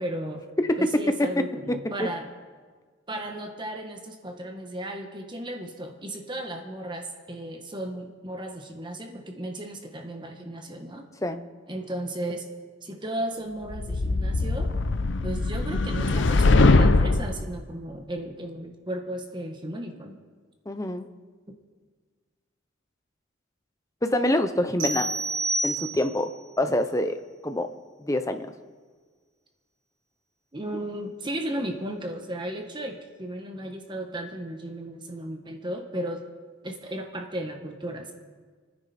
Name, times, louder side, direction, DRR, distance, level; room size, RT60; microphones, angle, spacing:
voice 1, 0.0-0.4 0.8-2.3 3.1-11.0 11.7-12.5 12.8-14.7 15.2-20.1 30.5-36.2 36.6-38.1, right 1 dB, 25° right, 3 dB, 1.3 m, -35 dB
voice 2, 0.6-0.9 1.7-2.1 11.2-11.4 20.7-21.1 24.0-25.1 25.6-26.3 26.6-27.2 27.4-27.7 28.0-28.5, left 1 dB, 15° left, 8 dB, 0.8 m, -25 dB
sound 1, 13.7-17.4, left 3 dB, 60° left, 0.7 m, -21 dB
sound 2, 24.8-26.3, right 2 dB, 75° right, 4.4 m, -29 dB
29.0 x 10.0 x 4.3 m, 1.5 s
head